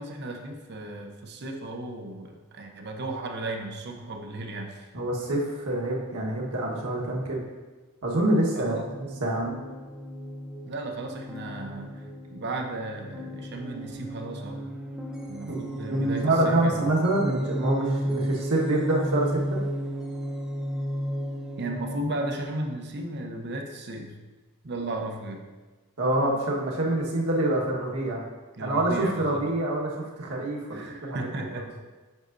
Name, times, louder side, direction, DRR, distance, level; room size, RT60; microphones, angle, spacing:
voice 1, 0.0-4.9 8.5-8.9 10.6-14.7 15.3-16.8 21.6-24.2 24.6-25.5 28.6-29.4 30.7-31.7, right 2 dB, 50° right, 3 dB, 0.8 m, -35 dB
voice 2, 4.9-7.5 8.0-9.6 15.5-15.6 15.9-19.6 26.0-28.2 28.6-31.6, right 1 dB, 75° right, -3 dB, 1.4 m, -26 dB
sound 1, 8.8-22.0, equal, 5° right, 0.5 m, -34 dB
8.1 x 6.3 x 2.6 m, 1.3 s
head